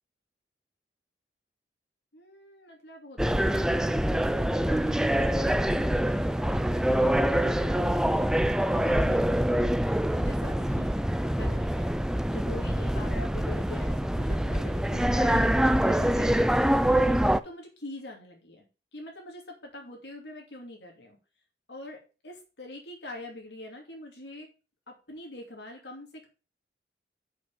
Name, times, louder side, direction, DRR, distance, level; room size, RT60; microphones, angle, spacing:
voice 1, 2.1-3.5 4.4-8.1 8.7-16.5 17.0-18.7 18.9-21.2 21.7-24.5 24.9-26.3, left 1 dB, 75° left, 1 dB, 2.5 m, -44 dB
sound 1, 3.2-17.4, right 1 dB, 5° right, 0.3 m, -25 dB
6.4 x 5.5 x 6.9 m, 0.33 s
head